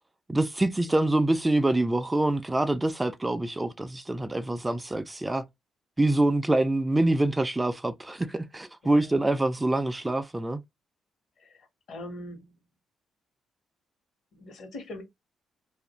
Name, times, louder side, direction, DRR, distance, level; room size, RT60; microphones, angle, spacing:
voice 1, 0.3-5.5 6.0-10.6, right 2 dB, 15° right, 0.3 m, -25 dB
voice 2, 8.8-9.2 11.4-12.7 14.3-15.0, left 1 dB, 65° left, 1.2 m, -43 dB
2.4 x 2.1 x 2.9 m
cardioid pair, 90°, 0 cm